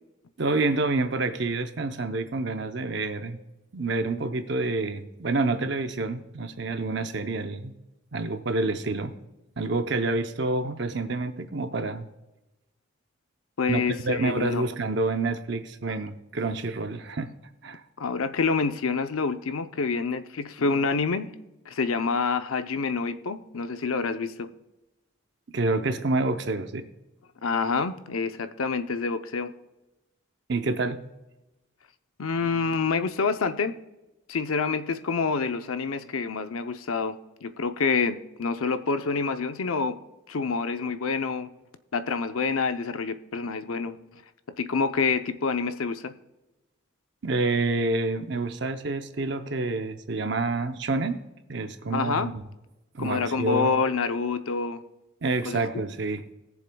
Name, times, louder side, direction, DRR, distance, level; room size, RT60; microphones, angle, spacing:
voice 1, 0.4-3.4 3.7-7.7 8.1-9.1 9.6-12.1 13.7-17.3 17.6-17.8 25.5-26.9 30.5-31.0 47.2-51.2 51.5-52.4 52.9-53.7 55.2-56.2, right 3 dB, 55° right, 7 dB, 0.7 m, -28 dB
voice 2, 13.6-14.7 18.0-21.3 21.7-24.5 27.4-29.5 32.2-33.7 34.3-37.1 37.4-40.0 40.3-41.5 41.9-44.2 44.6-46.1 51.9-52.3 53.0-54.8 55.4-55.8, left 4 dB, 85° left, 9 dB, 0.7 m, -27 dB
20.5 x 7.2 x 2.3 m, 1.0 s
head